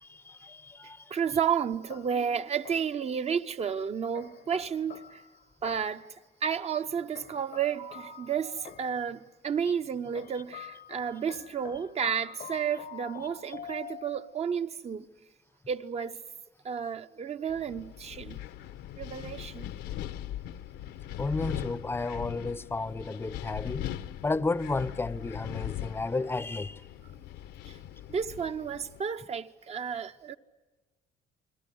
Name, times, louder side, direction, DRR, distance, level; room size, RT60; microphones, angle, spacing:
voice 1, 0.0-1.1 21.2-23.9 24.2-26.8, left 3 dB, 15° left, 0.7 m, -32 dB
voice 2, 1.1-5.2 5.6-6.1 6.4-15.0 15.7-16.2 16.6-18.4 19.0-19.7 27.7-27.8 28.1-30.4, right 7 dB, 40° right, 1.0 m, -32 dB
sound 1, 1.9-3.1 4.1-6.1 7.1-9.1 10.1-14.4, left 11 dB, 55° left, 0.8 m, -47 dB
Wind, 17.5-29.0, left 12 dB, 85° left, 1.0 m, -40 dB
29.5 x 21.5 x 7.8 m
cardioid pair, 110°, 17 cm